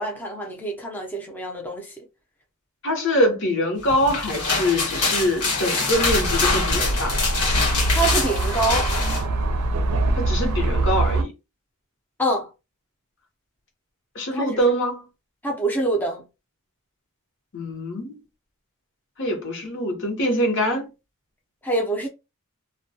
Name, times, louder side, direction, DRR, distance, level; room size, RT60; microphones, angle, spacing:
voice 1, 0.0-2.0 7.9-8.9 12.2-12.5 14.3-14.5 15.4-16.2 21.6-22.1, right 2 dB, 10° left, 0.5 m, -25 dB
voice 2, 2.8-7.1 10.1-11.3 14.1-15.0 17.5-18.2 19.2-20.9, equal, 55° left, 0.8 m, -24 dB
sound 1, 3.9-9.2, left 3 dB, 90° left, 1.1 m, -24 dB
sound 2, 5.9-11.2, right 2 dB, 80° right, 0.4 m, -23 dB
2.2 x 2.2 x 2.6 m
head